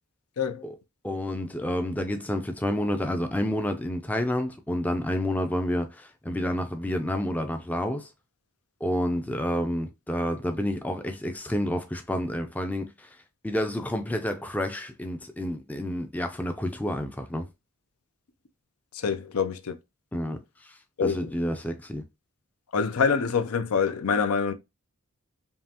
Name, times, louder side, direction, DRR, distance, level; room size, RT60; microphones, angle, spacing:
voice 1, 1.0-8.1 8.8-13.1 13.4-17.5 20.1-22.0, left 1 dB, 5° left, 0.4 m, -29 dB
voice 2, 18.9-19.8 21.0-21.3 22.7-24.5, left 5 dB, 75° left, 0.5 m, -25 dB
5.4 x 2.4 x 2.8 m
head